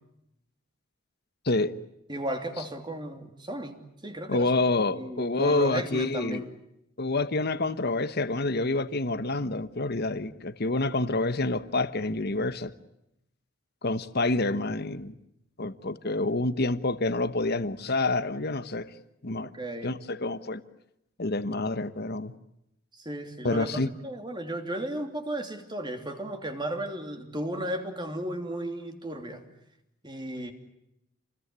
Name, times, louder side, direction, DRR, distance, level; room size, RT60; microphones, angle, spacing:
voice 1, 2.1-4.5 4.9-6.5 19.5-20.0 22.9-29.4 30.0-30.5, right 1 dB, 20° right, 3.0 m, -35 dB
voice 2, 4.3-6.4 7.0-12.7 13.8-15.1 15.6-18.9 19.2-19.5 19.8-20.6 21.2-22.3 23.4-23.9, left 2 dB, 50° left, 1.2 m, -28 dB
28.5 x 21.0 x 9.7 m
head